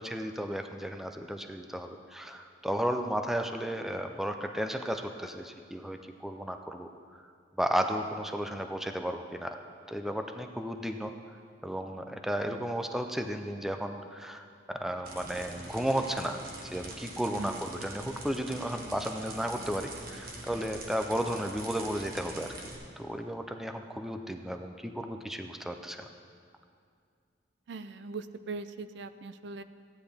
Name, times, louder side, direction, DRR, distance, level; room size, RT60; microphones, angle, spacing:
voice 1, 0.0-6.9 7.6-9.6 9.9-11.1 11.6-16.4 16.6-22.5 23.0-26.1, equal, ahead, 5 dB, 0.4 m, -34 dB
sound 1, 15.0-22.7, right 2 dB, 55° right, 1.3 m, -44 dB
voice 2, 17.4-17.7 27.7-29.6, right 3 dB, 75° right, 12 dB, 0.4 m, -41 dB
15.0 x 9.8 x 3.5 m, 2.2 s
head